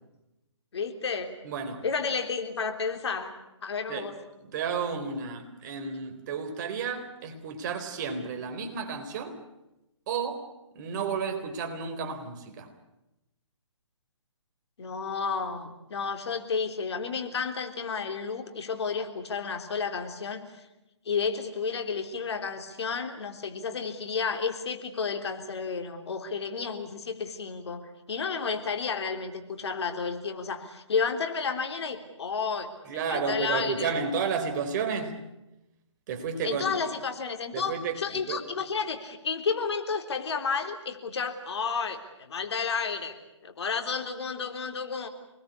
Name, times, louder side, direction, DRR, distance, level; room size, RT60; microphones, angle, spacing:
voice 1, 0.7-1.4 1.8-3.3 3.6-4.1 14.8-20.5 21.1-32.7 33.1-34.0 36.4-43.2 43.4-45.1, left 5 dB, 60° left, 3.5 m, -31 dB
voice 2, 1.4-1.8 3.9-4.1 4.5-9.4 10.1-10.5 10.7-12.7 32.9-35.2 36.1-36.8 37.5-38.4, right 5 dB, 40° right, 4.1 m, -32 dB
27.5 x 20.5 x 8.5 m
figure-of-eight pair, 140°, 16 cm